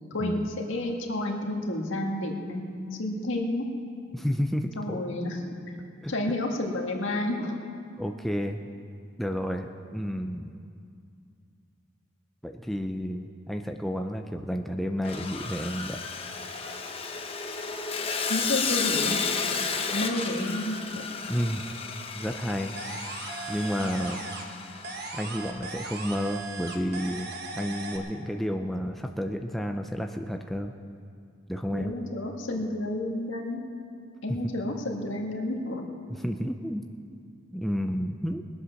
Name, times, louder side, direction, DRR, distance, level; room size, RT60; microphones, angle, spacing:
voice 1, 0.1-3.7 4.8-5.5 6.1-7.6 18.3-19.2 19.9-21.0 31.7-33.6 34.2-35.9, left 1 dB, 70° left, 1 dB, 1.8 m, -30 dB
voice 2, 4.1-5.0 6.0-6.1 8.0-8.6 9.2-10.5 12.4-16.0 21.3-21.6 22.1-23.0 23.5-24.2 25.1-30.7 31.5-31.9 34.3-34.4 36.1-36.9 37.5-38.4, equal, ahead, 3 dB, 0.4 m, -31 dB
Sawing, 15.0-25.3, left 5 dB, 30° left, 0.9 m, -33 dB
sound 1, 22.8-24.6 24.8-28.0, right 3 dB, 50° right, 1.4 m, -38 dB
21.0 x 8.1 x 6.4 m, 2.3 s
head